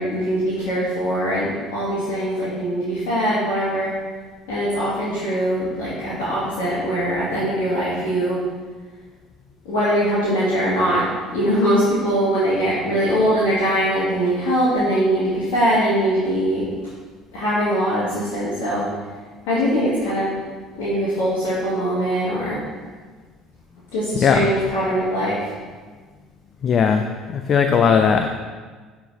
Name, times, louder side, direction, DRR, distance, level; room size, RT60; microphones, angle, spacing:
voice 1, 0.0-4.0 4.5-8.4 9.6-11.1 11.3-16.6 17.3-18.9 19.5-20.4 20.7-22.6 23.9-25.5, equal, 65° left, -10 dB, 2.0 m, -22 dB
voice 2, 26.6-27.0 27.3-28.3, left 6 dB, 45° left, 6 dB, 0.4 m, -17 dB
9.8 x 4.0 x 4.1 m, 1.5 s
figure-of-eight pair, 60°, 0 cm